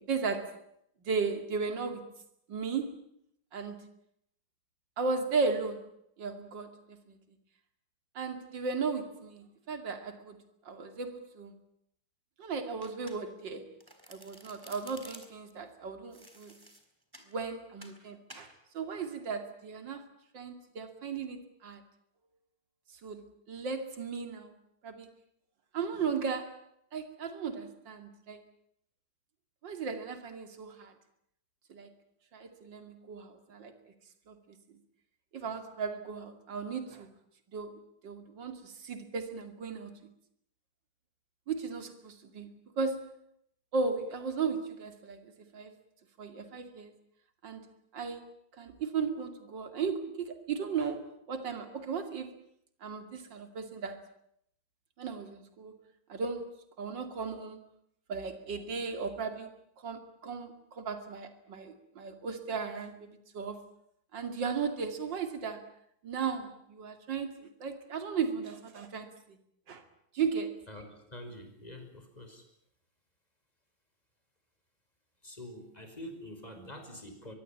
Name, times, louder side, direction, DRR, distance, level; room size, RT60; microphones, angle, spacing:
voice 1, 0.1-0.6 1.0-2.1 2.5-3.0 3.5-3.9 5.0-5.9 6.2-7.2 8.1-10.4 10.6-11.5 12.4-13.7 14.1-16.5 17.3-20.0 20.3-21.8 23.0-23.2 23.5-24.5 24.8-25.1 25.7-26.6 26.9-28.4 29.6-30.9 31.7-31.9 32.3-33.7 34.3-34.4 34.7-34.8 35.3-37.1 37.5-37.7 38.0-39.9 41.5-43.2 43.7-45.7 46.2-46.9 47.4-47.6 47.9-48.3 48.6-52.3 52.8-54.0 55.0-55.7 56.1-57.6 58.1-59.6 59.8-63.6 64.1-65.6 66.0-67.3 67.6-69.4 69.7-69.8 70.1-70.6, right 5 dB, 65° right, 7 dB, 3.1 m, -36 dB
Domestic sounds home sounds, 12.8-13.5 13.8-15.5 16.1-17.3 17.8-18.0 18.3-18.5, right 1 dB, 10° right, 4.0 m, -52 dB
voice 2, 70.7-72.4 75.2-77.3, left 1 dB, 20° left, 6 dB, 5.8 m, -46 dB
24.0 x 23.0 x 8.7 m, 0.73 s
omnidirectional pair, 2.2 m